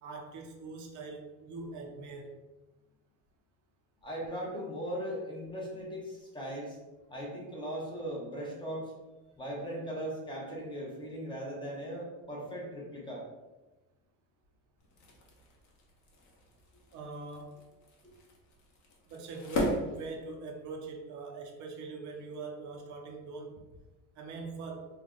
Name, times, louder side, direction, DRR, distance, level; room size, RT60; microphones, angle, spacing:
voice 1, 0.0-2.3 16.9-17.6 19.1-23.6 24.2-24.9, right 3 dB, 50° right, 1 dB, 0.7 m, -42 dB
voice 2, 4.0-6.8 7.1-8.9 9.4-13.2, equal, 10° left, -3 dB, 0.9 m, -38 dB
sound 1, 14.8-20.8, left 1 dB, 50° left, 0.9 m, -39 dB
3.4 x 2.3 x 3.7 m, 1.1 s
cardioid pair, 145°, 38 cm